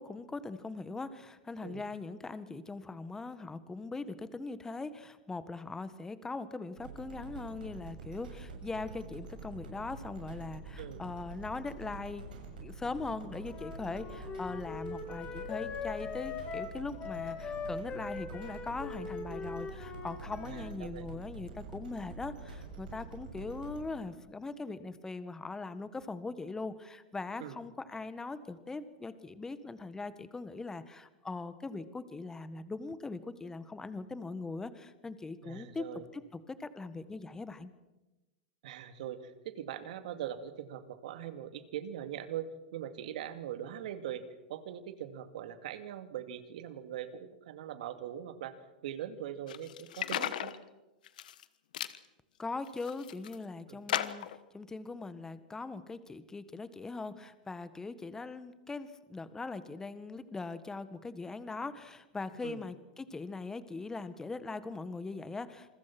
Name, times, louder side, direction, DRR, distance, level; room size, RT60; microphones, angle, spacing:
voice 1, 0.0-12.2 12.5-35.8 36.1-36.2 36.5-37.7 52.4-54.3 54.5-65.8, left 3 dB, 10° left, 13 dB, 1.6 m, -41 dB
sound 1, 6.8-23.9, right 4 dB, 90° right, 7.0 m, -47 dB
Wind instrument woodwind instrument, 13.4-20.7, left 5 dB, 30° left, 3.3 m, -41 dB
voice 2, 20.4-21.1 27.4-27.6 35.4-36.0 38.6-44.2 44.5-48.6 48.8-50.5 53.7-53.9 62.4-62.6, right 10 dB, 70° right, 9 dB, 2.4 m, -41 dB
sound 2, 49.5-50.6 51.0-51.4 51.7-52.0 52.6-53.3 53.9-54.4, left 11 dB, 80° left, 1.3 m, -35 dB
27.5 x 21.5 x 6.1 m, 1.0 s
hypercardioid pair, 115°, 4 cm